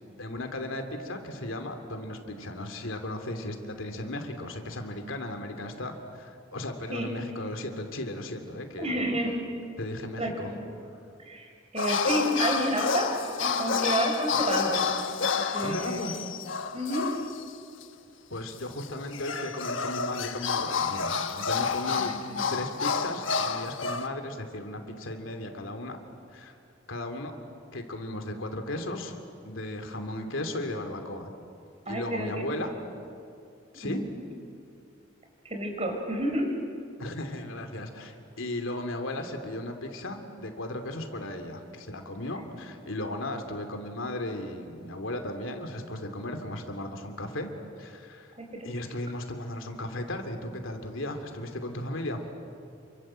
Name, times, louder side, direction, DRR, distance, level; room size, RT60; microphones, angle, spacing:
voice 1, 0.2-9.0 9.8-10.5 15.6-16.1 18.3-22.1 22.5-26.0 26.3-26.5 26.9-27.3 27.7-29.2 29.4-31.3 31.9-32.7 33.7-34.0 37.0-47.5 47.8-48.3 48.6-52.2, left 1 dB, 90° left, 5 dB, 3.0 m, -36 dB
voice 2, 8.8-9.3 10.2-10.7 11.2-13.1 13.4-15.0 15.5-16.1 16.7-17.1 21.9-22.4 31.9-32.3 33.8-34.1 35.5-36.5 48.4-48.7, right 1 dB, 35° right, 2 dB, 5.2 m, -30 dB
sound 1, 11.8-17.5 17.8-17.9 18.8-24.1, left 5 dB, 70° left, 1.2 m, -29 dB
29.0 x 24.5 x 7.7 m, 2.5 s
head